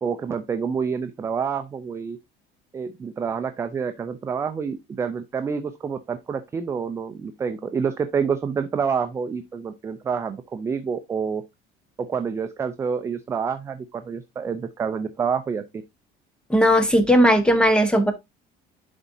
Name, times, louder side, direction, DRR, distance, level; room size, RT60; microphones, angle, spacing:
voice 1, 0.0-2.2 2.7-11.4 12.0-15.6, right 6 dB, 15° right, 0.4 m, -28 dB
voice 2, 16.5-18.1, equal, 5° left, 0.8 m, -17 dB
10.5 x 4.1 x 2.6 m
cardioid pair, 175°, 19 cm